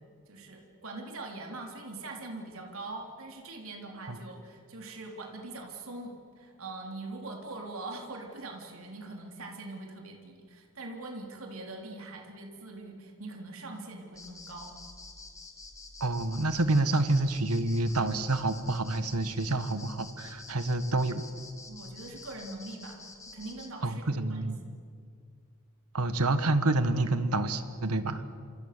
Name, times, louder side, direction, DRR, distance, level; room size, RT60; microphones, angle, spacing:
voice 1, 0.3-14.7 21.7-23.0 23.3-24.5, right 2 dB, 70° right, 1 dB, 3.6 m, -42 dB
sound 1, 14.1-23.7, left 3 dB, 15° left, 2.5 m, -48 dB
voice 2, 16.0-21.2 23.8-24.6 25.9-28.2, right 2 dB, 90° right, 10 dB, 1.7 m, -28 dB
28.0 x 27.0 x 6.9 m, 2.2 s
head